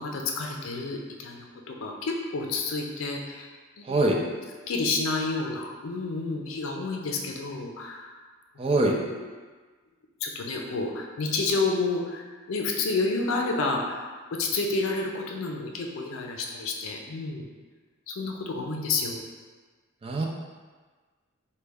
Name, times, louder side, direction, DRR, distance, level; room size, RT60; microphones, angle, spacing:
voice 1, 0.0-3.5 3.8-4.4 4.7-8.1 8.5-9.3 10.2-17.5 18.1-19.2, left 3 dB, 75° left, 1 dB, 0.4 m, -30 dB
voice 2, 3.9-4.2 8.6-9.0 20.0-20.3, right 2 dB, 30° right, 0 dB, 0.3 m, -23 dB
3.1 x 2.2 x 3.4 m, 1.4 s
head